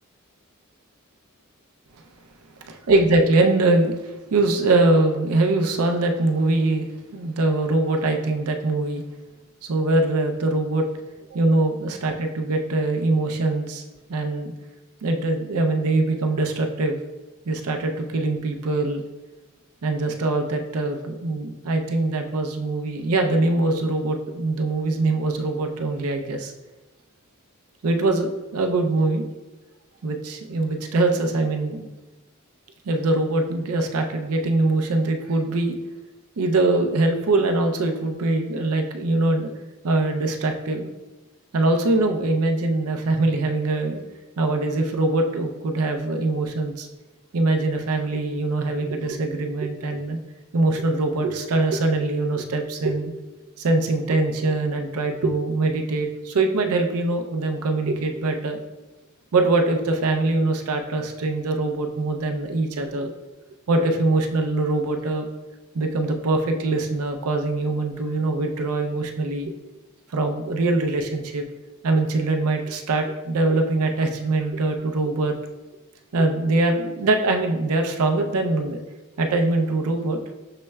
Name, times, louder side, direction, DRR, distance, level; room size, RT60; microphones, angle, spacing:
voice 1, 2.9-9.0 9.6-10.8 11.3-13.8 14.1-14.5 15.0-17.0 17.5-19.0 19.8-26.5 27.8-29.3 30.0-31.9 32.9-35.8 36.4-39.5 39.8-40.9 41.5-44.0 44.4-46.9 47.3-50.2 50.5-53.1 53.6-58.6 59.3-63.1 63.7-65.2 65.7-69.5 70.1-71.4 71.8-75.3 76.1-78.8 79.2-80.2, right 2 dB, 90° right, 4 dB, 0.5 m, -23 dB
6.6 x 3.1 x 2.2 m, 1.1 s
head